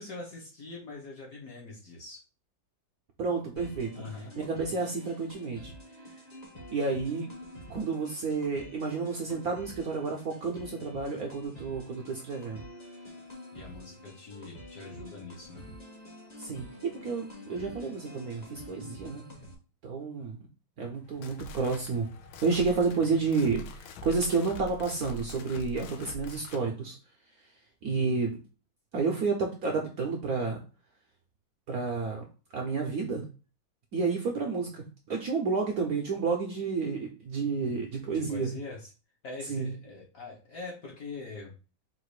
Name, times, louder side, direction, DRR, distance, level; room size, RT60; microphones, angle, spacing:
voice 1, 0.0-2.2 3.9-4.3 13.5-15.6 38.1-38.9 39.2-41.5, left 3 dB, 50° left, -2 dB, 1.3 m, -43 dB
voice 2, 3.2-4.0 4.4-5.7 6.7-7.3 7.7-12.6 16.4-19.2 19.8-20.4 20.8-22.1 22.4-27.0 27.8-28.4 28.9-30.6 31.7-32.2 32.5-33.2 33.9-38.5 39.5-39.7, right 4 dB, 65° right, 1 dB, 1.0 m, -30 dB
sound 1, 3.6-19.6, left 1 dB, 30° left, 0.8 m, -47 dB
sound 2, 21.0-26.7, left 1 dB, 85° left, 1.4 m, -44 dB
4.0 x 2.6 x 4.7 m, 0.34 s
omnidirectional pair, 2.2 m